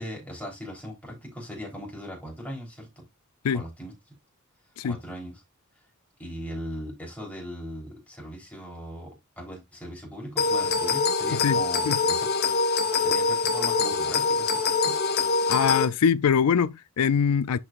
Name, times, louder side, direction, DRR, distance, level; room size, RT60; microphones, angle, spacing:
voice 1, 0.0-3.0 3.5-4.2 4.8-5.4 6.2-12.3 13.0-15.0, equal, 5° left, 3.6 m, -39 dB
sound 1, 10.4-15.8, left 4 dB, 50° left, 1.2 m, -24 dB
voice 2, 15.5-17.6, left 7 dB, 85° left, 0.4 m, -23 dB
11.0 x 4.8 x 2.5 m
head